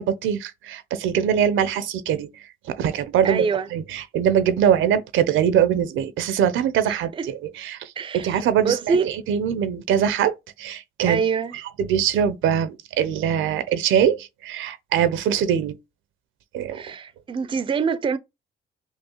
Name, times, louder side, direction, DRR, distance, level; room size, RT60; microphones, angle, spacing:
voice 1, 0.0-2.3 2.7-11.2 11.5-15.8 16.5-16.8, right 9 dB, 80° right, 0.5 m, -23 dB
voice 2, 3.2-3.7 6.9-7.3 8.0-9.2 11.1-11.5 16.7-18.2, right 5 dB, 25° right, 0.4 m, -25 dB
5.4 x 2.0 x 2.9 m
cardioid pair, 90°, 20 cm